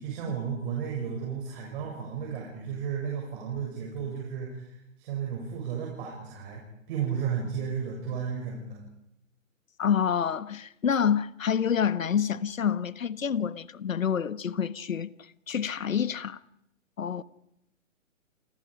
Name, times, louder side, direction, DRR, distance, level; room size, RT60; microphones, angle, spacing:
voice 1, 0.0-8.8, right 7 dB, 40° right, 7.4 m, -33 dB
voice 2, 9.8-15.1 15.5-16.4 17.0-17.2, left 8 dB, 75° left, 1.3 m, -27 dB
29.5 x 28.5 x 5.1 m
hypercardioid pair, 135°, 40 cm